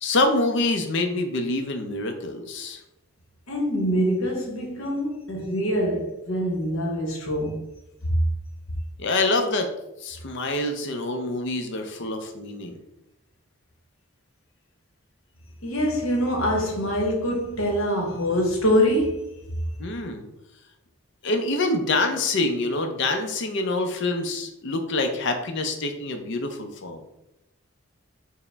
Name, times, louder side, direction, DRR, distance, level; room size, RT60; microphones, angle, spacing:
voice 1, 0.0-2.8 9.0-9.7 10.0-12.8 19.8-20.3 21.2-27.0, left 2 dB, 60° left, 0.5 m, -26 dB
voice 2, 3.5-7.6 8.1-8.2 15.6-19.3, equal, 80° left, 0.9 m, -24 dB
4.7 x 2.1 x 3.3 m
head